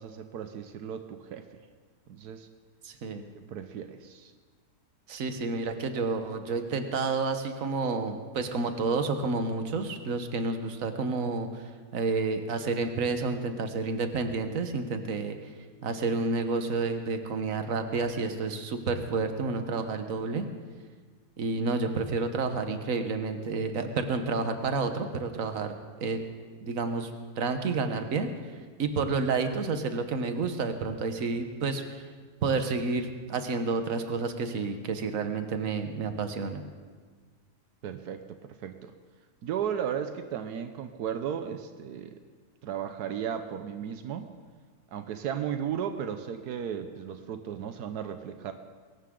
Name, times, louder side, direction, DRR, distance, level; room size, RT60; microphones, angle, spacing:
voice 1, 0.0-1.6 2.1-2.5 3.3-4.3 37.8-38.9 39.4-42.2 42.6-44.3 44.9-48.5, right 8 dB, 85° right, 8 dB, 1.3 m, -35 dB
voice 2, 2.8-3.2 5.1-11.6 11.9-15.4 15.8-20.5 21.4-25.7 26.0-26.2 26.6-27.1 27.4-28.3 28.8-32.1 32.4-36.6, right 4 dB, 60° right, 7 dB, 1.5 m, -30 dB
21.5 x 17.5 x 3.8 m, 1.5 s
omnidirectional pair, 1.6 m